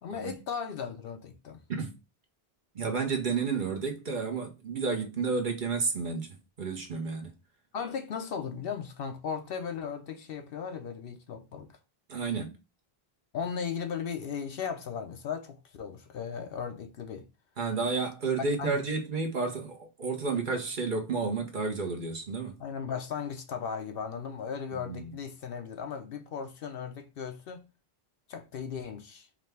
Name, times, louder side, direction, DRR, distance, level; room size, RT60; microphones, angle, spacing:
voice 1, 0.0-1.6 7.7-11.7 13.3-17.3 18.6-18.8 22.6-27.6 28.3-29.3, left 6 dB, 70° left, 0.8 m, -36 dB
voice 2, 2.7-7.3 12.1-12.6 17.6-22.6 24.7-25.1, right 4 dB, 55° right, 0.9 m, -31 dB
4.8 x 2.2 x 3.4 m
omnidirectional pair, 1.0 m